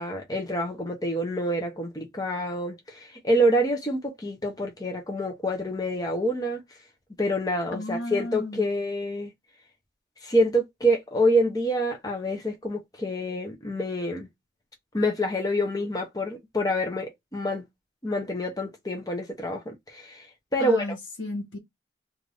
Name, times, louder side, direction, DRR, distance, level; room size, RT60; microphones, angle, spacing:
voice 1, 0.0-6.6 7.2-9.3 10.2-14.3 14.9-17.6 18.0-20.3 20.5-20.9, equal, 20° left, 0.6 m, -27 dB
voice 2, 7.7-8.6 20.6-21.6, left 2 dB, 90° left, 1.1 m, -33 dB
2.5 x 2.5 x 3.3 m
head